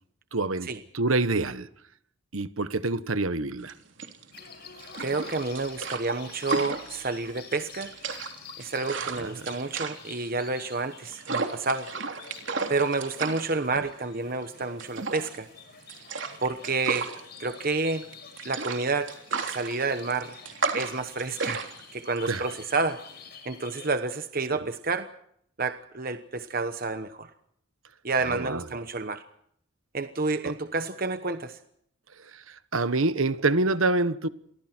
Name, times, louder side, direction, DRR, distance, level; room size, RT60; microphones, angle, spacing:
voice 1, 0.3-1.7 2.3-3.7 9.2-9.3 22.3-22.4 28.2-28.6 32.7-34.3, right 2 dB, 85° right, 1.3 m, -26 dB
sound 1, 3.6-23.3, right 4 dB, 65° right, 3.3 m, -34 dB
petshop.with.boys, 4.3-23.9, left 6 dB, 50° left, 6.1 m, -48 dB
voice 2, 5.0-7.9 8.6-11.9 12.7-15.5 16.4-17.1 17.4-18.1 18.4-19.1 19.5-20.4 20.7-21.6 21.9-23.0 23.4-25.1 25.6-27.3 28.0-29.2 29.9-31.6, right 3 dB, 45° right, 1.1 m, -29 dB
30.0 x 23.5 x 4.5 m
head